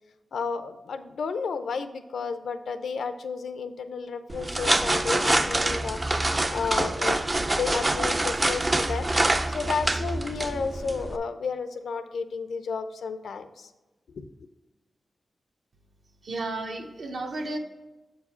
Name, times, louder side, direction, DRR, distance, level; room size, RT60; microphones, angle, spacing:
voice 1, 0.3-6.0 6.5-7.2 7.5-9.1 9.5-13.7 14.1-14.3, left 5 dB, 85° left, 9 dB, 0.5 m, -32 dB
sound 1, 4.3-11.2, right 2 dB, 25° right, 0.4 m, -26 dB
voice 2, 16.2-17.6, right 2 dB, 65° right, 3 dB, 1.0 m, -33 dB
7.8 x 4.7 x 4.3 m, 1.1 s
wide cardioid pair, 110°, 0 cm